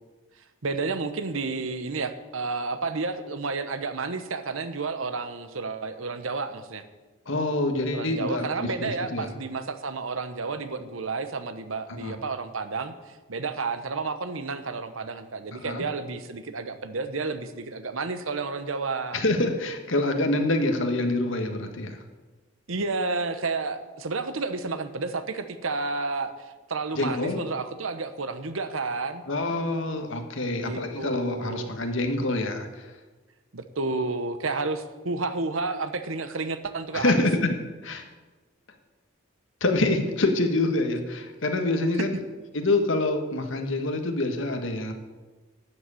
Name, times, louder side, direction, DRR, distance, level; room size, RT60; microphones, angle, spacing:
voice 1, 0.6-6.8 7.9-19.2 22.7-29.2 30.4-31.7 33.5-37.2, right 3 dB, 80° right, 10 dB, 1.0 m, -31 dB
voice 2, 7.3-9.3 11.9-12.2 15.5-15.8 19.1-22.0 27.0-27.4 29.3-32.9 36.9-37.5 37.8-38.1 39.6-42.1 42.5-44.9, left 2 dB, 70° left, 5 dB, 1.6 m, -26 dB
12.0 x 7.9 x 8.4 m, 1.3 s
head